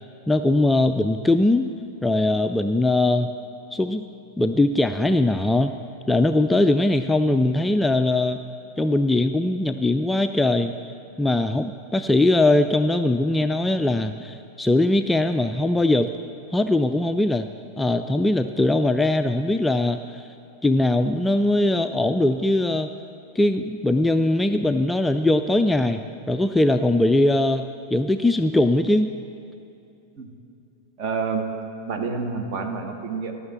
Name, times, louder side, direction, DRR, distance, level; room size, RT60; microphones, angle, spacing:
voice 1, 0.3-1.7 2.0-3.3 3.7-4.0 4.4-5.8 6.1-8.4 8.8-10.9 11.2-16.1 16.5-17.5 17.8-20.3 20.6-22.9 23.4-26.0 26.3-29.1, left 2 dB, 5° left, 8 dB, 0.3 m, -21 dB
voice 2, 31.0-31.4 31.9-33.3, right 4 dB, 40° right, 4 dB, 1.2 m, -28 dB
12.5 x 6.3 x 7.3 m, 2.7 s
figure-of-eight pair, 90°, 0 cm